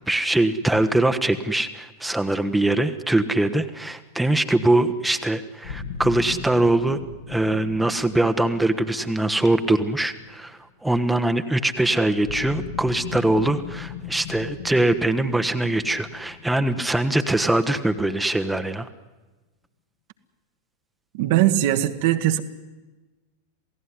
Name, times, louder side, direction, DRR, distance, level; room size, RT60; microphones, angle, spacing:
voice 1, 0.1-7.0 7.3-18.9, right 2 dB, 5° right, 1.2 m, -22 dB
sound 1, 5.6-10.6 12.2-17.9, left 7 dB, 60° left, 2.4 m, -38 dB
voice 2, 21.1-22.4, right 13 dB, 50° right, 1.4 m, -20 dB
27.5 x 17.0 x 9.8 m
figure-of-eight pair, 90°, 0 cm